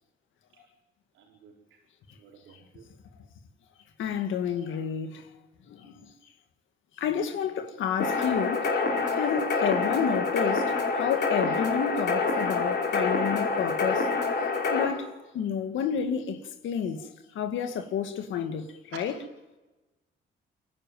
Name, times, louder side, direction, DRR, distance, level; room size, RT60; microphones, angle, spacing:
voice 1, 1.1-1.8 2.2-2.9 18.9-19.0, right 8 dB, 90° right, 4.8 m, -50 dB
voice 2, 4.0-5.2 5.7-6.1 7.0-8.6 9.1-14.1 14.7-17.0 17.4-19.2, left 7 dB, 75° left, 2.0 m, -30 dB
sound 1, 8.0-14.9, left 4 dB, 55° left, 5.1 m, -27 dB
28.5 x 11.5 x 9.1 m
cardioid pair, 90°, 20 cm